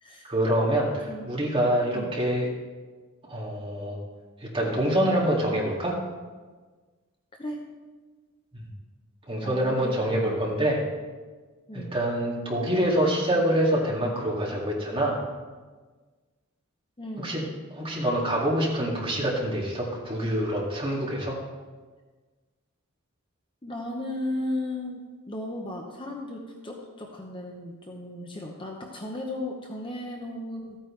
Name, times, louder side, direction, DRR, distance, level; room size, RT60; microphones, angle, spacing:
voice 1, 0.2-2.5 3.3-4.0 4.5-6.0 8.5-8.7 9.3-10.8 11.7-15.2 17.2-17.4 17.7-21.4, right 1 dB, 25° right, -4 dB, 2.2 m, -26 dB
voice 2, 1.6-2.1 7.3-7.7 9.4-10.5 11.7-11.9 17.0-17.3 23.6-30.8, left 1 dB, 25° left, 0 dB, 0.8 m, -35 dB
14.0 x 9.2 x 3.2 m, 1.4 s
head